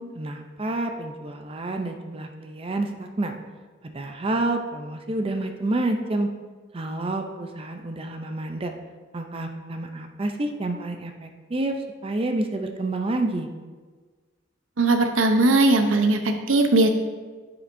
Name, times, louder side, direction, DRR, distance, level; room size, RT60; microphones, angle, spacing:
voice 1, 0.0-3.4 3.8-6.3 6.7-8.7 9.1-11.8 12.0-13.5, right 2 dB, 30° right, 5 dB, 0.4 m, -29 dB
voice 2, 14.8-16.9, right 2 dB, 85° right, 6 dB, 0.7 m, -19 dB
9.6 x 5.7 x 2.6 m, 1.4 s
head